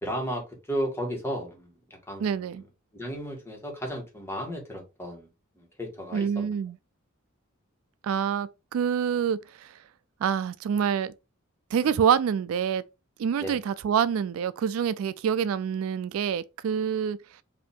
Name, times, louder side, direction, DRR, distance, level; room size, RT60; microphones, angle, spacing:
voice 1, 0.0-2.7 2.9-5.3 5.6-6.5 11.8-12.0 13.4-13.6, equal, 10° left, 1.5 m, -34 dB
voice 2, 2.2-2.6 6.1-6.8 8.0-9.7 10.2-11.1 11.7-12.8 13.2-17.2, right 7 dB, 80° right, 0.3 m, -26 dB
5.0 x 2.7 x 3.5 m
head